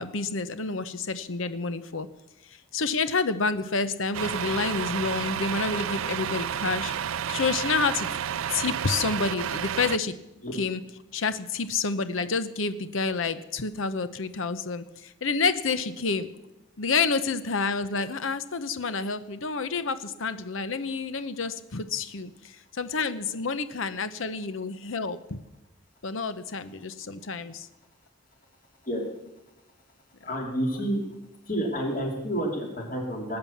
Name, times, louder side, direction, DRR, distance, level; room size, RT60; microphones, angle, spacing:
voice 1, 0.0-2.1 2.5-6.9 7.3-8.1 8.5-10.1 10.6-10.8 11.1-16.3 16.8-25.4 26.0-27.7, left 4 dB, 75° left, 12 dB, 0.9 m, -29 dB
Truck, 4.1-10.0, right 9 dB, 90° right, 0.5 m, -31 dB
voice 2, 30.2-31.0 31.4-33.4, equal, 40° left, 0 dB, 3.1 m, -29 dB
19.5 x 8.8 x 7.3 m, 0.91 s
head